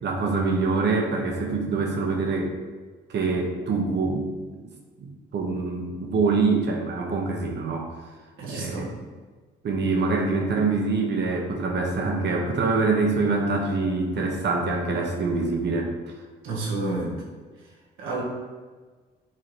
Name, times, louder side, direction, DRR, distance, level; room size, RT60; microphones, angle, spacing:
voice 1, 0.0-2.5 3.1-4.3 5.0-7.9 8.4-8.9 9.6-15.9, right 3 dB, 60° right, 1 dB, 1.2 m, -25 dB
voice 2, 8.4-8.9 16.4-17.2 18.0-18.2, right 2 dB, 85° right, -3 dB, 1.7 m, -30 dB
6.9 x 4.0 x 3.4 m, 1.4 s
cardioid pair, 90°, 20 cm